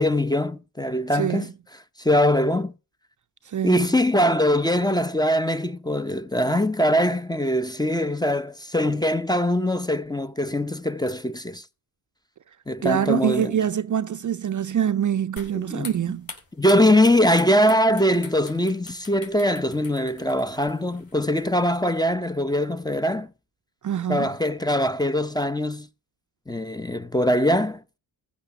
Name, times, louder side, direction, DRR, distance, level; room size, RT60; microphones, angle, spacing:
voice 1, 0.0-1.5 2.0-2.7 3.6-11.6 12.7-13.5 15.5-15.9 16.6-23.3 24.1-25.9 26.5-27.8, left 1 dB, 10° left, 0.7 m, -22 dB
voice 2, 1.1-1.5 3.5-3.9 12.8-16.3 23.8-24.3, right 9 dB, 40° right, 0.5 m, -25 dB
sound 1, 15.4-21.9, left 3 dB, 45° left, 4.6 m, -44 dB
14.5 x 6.2 x 6.7 m
cardioid pair, 65°, 48 cm